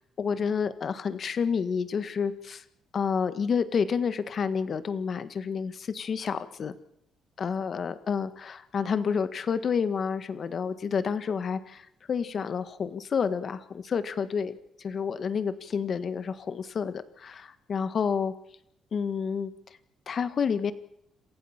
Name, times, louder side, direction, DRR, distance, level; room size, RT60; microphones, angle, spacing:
voice 1, 0.2-2.6 2.9-6.7 7.4-18.3 18.9-19.5 20.1-20.7, left 6 dB, 50° left, 12 dB, 1.6 m, -29 dB
27.5 x 15.5 x 7.4 m, 0.75 s
cardioid pair, 90°, 0 cm